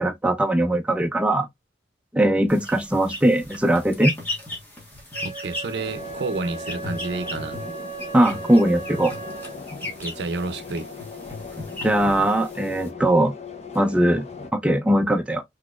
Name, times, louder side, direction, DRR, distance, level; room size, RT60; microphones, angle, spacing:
voice 1, 0.0-1.5 2.1-4.1 8.1-9.1 11.8-13.3 13.7-15.4, right 1 dB, 5° right, 0.3 m, -20 dB
sound 1, 2.5-12.9, left 1 dB, 10° left, 1.2 m, -36 dB
Wind instrument woodwind instrument, 5.1-9.6, right 4 dB, 80° left, 1.6 m, -37 dB
voice 2, 5.2-7.6 9.8-10.9, right 3 dB, 75° right, 0.5 m, -30 dB
sound 2, 5.7-14.5, left 4 dB, 35° left, 0.6 m, -39 dB
3.9 x 2.9 x 2.3 m
head